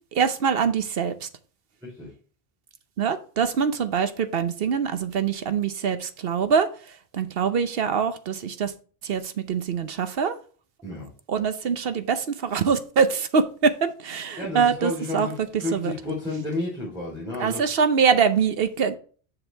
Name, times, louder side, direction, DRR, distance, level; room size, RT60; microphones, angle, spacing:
voice 1, 0.1-1.3 3.0-8.7 9.0-10.3 11.3-15.3 15.7-15.9 17.4-19.0, right 6 dB, 65° right, 10 dB, 1.0 m, -24 dB
voice 2, 14.4-17.7, left 2 dB, 5° right, -9 dB, 3.5 m, -31 dB
6.9 x 6.3 x 3.4 m, 0.41 s
omnidirectional pair, 1.1 m